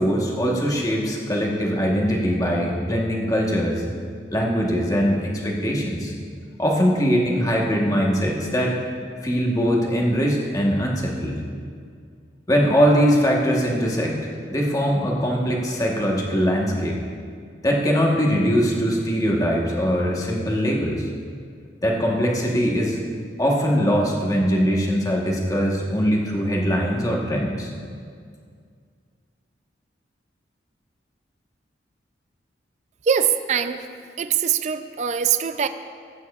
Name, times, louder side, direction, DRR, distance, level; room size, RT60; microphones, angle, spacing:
voice 1, 0.0-3.8 4.3-6.1 6.6-8.7 9.2-11.4 12.5-17.0 17.6-21.1 21.8-23.0 23.4-27.7, equal, 20° left, -2 dB, 1.1 m, -21 dB
voice 2, 33.0-33.8 34.2-35.7, right 7 dB, 40° right, 10 dB, 0.3 m, -22 dB
16.5 x 8.8 x 2.4 m, 2.1 s
head